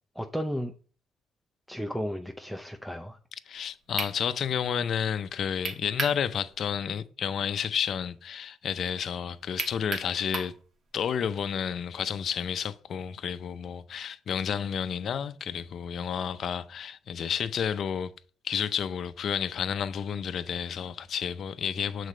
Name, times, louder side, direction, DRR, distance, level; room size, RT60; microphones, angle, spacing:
voice 1, 0.2-0.7 1.7-3.2, equal, ahead, 0.6 m, -33 dB
voice 2, 3.5-10.5 10.9-18.1 18.4-22.1, left 8 dB, 60° left, 0.5 m, -31 dB
sound 1, 3.6-3.7 4.0-4.2 5.6-6.2 6.6-6.7 9.6-10.6, right 4 dB, 55° right, 1.3 m, -32 dB
6.5 x 4.2 x 4.9 m
cardioid pair, 90°, 0 cm